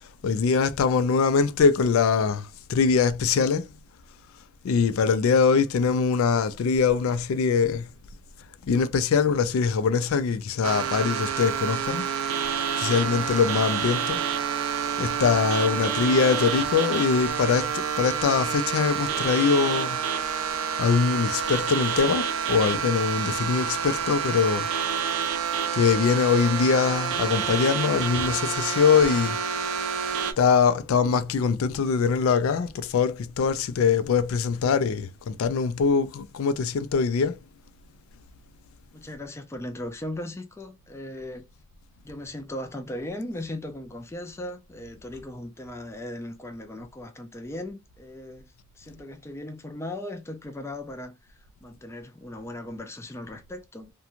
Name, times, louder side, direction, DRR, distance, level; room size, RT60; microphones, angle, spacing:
voice 1, 0.2-3.7 4.6-7.9 8.7-12.1 12.8-14.2 15.0-20.0 20.8-24.7 25.7-29.4 30.4-37.4, left 5 dB, 80° left, 0.4 m, -23 dB
sound 1, 10.6-30.3, right 7 dB, 80° right, 0.4 m, -28 dB
voice 2, 38.9-41.5 42.0-53.9, left 1 dB, 15° left, 0.4 m, -38 dB
2.5 x 2.2 x 2.8 m
head